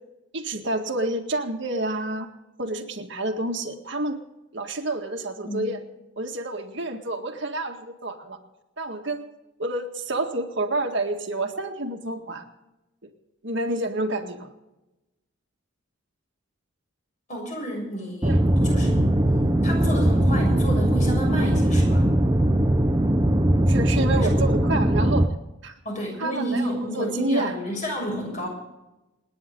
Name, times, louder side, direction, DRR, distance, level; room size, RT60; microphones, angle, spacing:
voice 1, 0.3-2.3 2.6-4.2 4.5-5.8 6.2-8.4 8.8-9.3 9.6-12.5 13.4-14.5 18.2-18.4 23.7-25.3 25.6-25.7 26.2-27.5, right 2 dB, 60° right, 3 dB, 1.8 m, -29 dB
voice 2, 17.3-22.1 24.1-24.4 25.8-28.5, right 1 dB, 35° left, 0 dB, 6.7 m, -30 dB
sound 1, 18.2-25.3, right 1 dB, 15° right, 0.8 m, -20 dB
28.5 x 9.9 x 3.8 m, 0.99 s
head